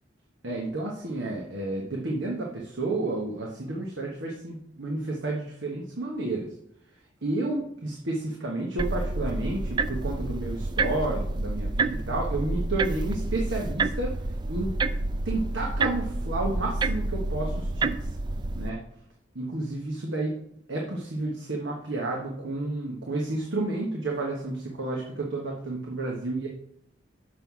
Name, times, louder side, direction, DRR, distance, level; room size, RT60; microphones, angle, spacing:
voice 1, 0.4-6.5 7.2-14.2 14.5-14.7 15.2-18.1 18.6-18.8 19.3-20.4 20.7-26.5, right 2 dB, 85° right, -2 dB, 1.3 m, -31 dB
sound 1, 8.8-18.7, right 3 dB, 25° right, 0.3 m, -29 dB
6.7 x 4.7 x 5.6 m, 0.73 s
head